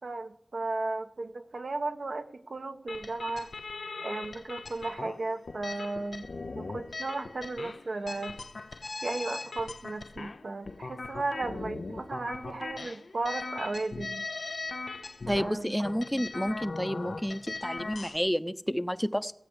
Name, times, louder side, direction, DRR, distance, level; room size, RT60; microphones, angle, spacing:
voice 1, 0.0-3.5 4.0-6.3 6.5-8.4 9.0-14.3 15.3-15.8, right 2 dB, 80° right, 6 dB, 1.2 m, -35 dB
sound 1, 2.9-18.2, left 3 dB, 90° left, 0.8 m, -40 dB
voice 2, 15.3-19.3, equal, 5° left, 11 dB, 0.7 m, -30 dB
17.0 x 8.5 x 8.0 m, 0.69 s
wide cardioid pair, 60°, 0 cm